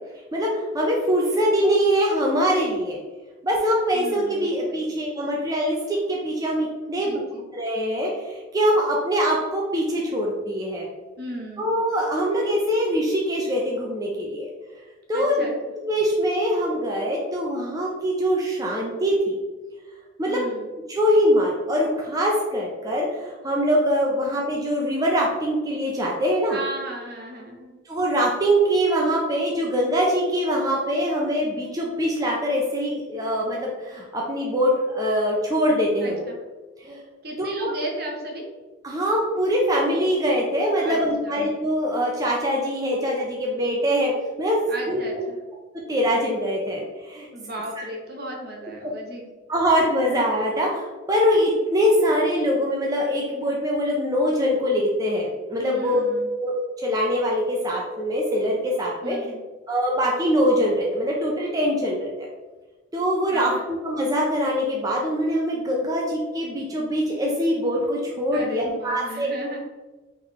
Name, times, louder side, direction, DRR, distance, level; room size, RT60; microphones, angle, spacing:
voice 1, 0.3-3.0 3.4-7.2 7.5-8.1 8.5-10.9 11.6-14.5 15.1-15.5 15.9-19.4 20.2-20.4 20.9-26.6 27.9-36.3 36.8-37.0 37.6-37.7 38.8-44.1 44.4-44.6 44.9-45.0 45.9-47.3 49.5-56.0 56.4-59.2 59.7-62.3 62.9-69.3, equal, 20° right, -2 dB, 0.5 m, -23 dB
voice 2, 3.9-4.8 7.0-7.5 11.2-11.7 15.1-15.5 20.3-20.7 26.5-27.7 36.0-36.4 37.2-38.4 40.8-41.5 44.7-45.4 47.3-49.3 55.6-56.3 59.0-59.4 63.3-63.7 68.3-69.6, right 1 dB, 60° right, 0 dB, 0.9 m, -35 dB
3.9 x 3.1 x 3.0 m, 1.3 s
head